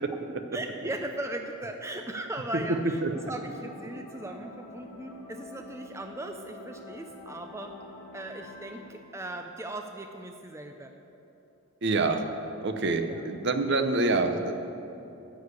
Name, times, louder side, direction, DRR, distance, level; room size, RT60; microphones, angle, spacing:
voice 1, 0.5-7.7 8.1-10.9 13.0-13.3, right 1 dB, 15° right, 4 dB, 0.4 m, -38 dB
sound 1, 3.1-8.8, left 3 dB, 5° left, 1.7 m, -47 dB
voice 2, 11.8-12.2 12.6-14.5, right 3 dB, 50° right, 7 dB, 0.7 m, -26 dB
9.9 x 6.5 x 8.1 m, 3.0 s
head